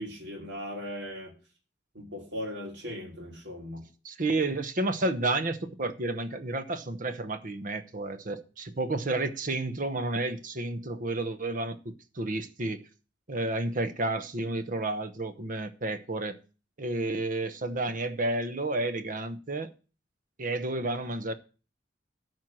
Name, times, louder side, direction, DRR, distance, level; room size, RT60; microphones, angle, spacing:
voice 1, 0.0-1.3 1.9-3.8, equal, 75° right, 3.1 m, -38 dB
voice 2, 4.0-12.8 13.3-16.4 16.8-19.7 20.4-21.3, right 2 dB, 45° right, 1.0 m, -31 dB
12.5 x 4.6 x 7.5 m
head